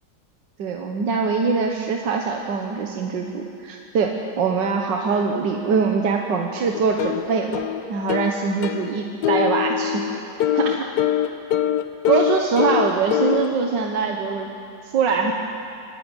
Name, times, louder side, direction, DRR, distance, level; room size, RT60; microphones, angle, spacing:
voice 1, 0.6-7.6 7.9-10.0 10.5-10.8 12.1-14.5 14.9-15.3, right 5 dB, 85° right, 2 dB, 1.8 m, -23 dB
sound 1, 6.7-13.5, left 11 dB, 70° left, 1.3 m, -23 dB
25.5 x 11.5 x 9.7 m, 2.5 s
omnidirectional pair, 1.9 m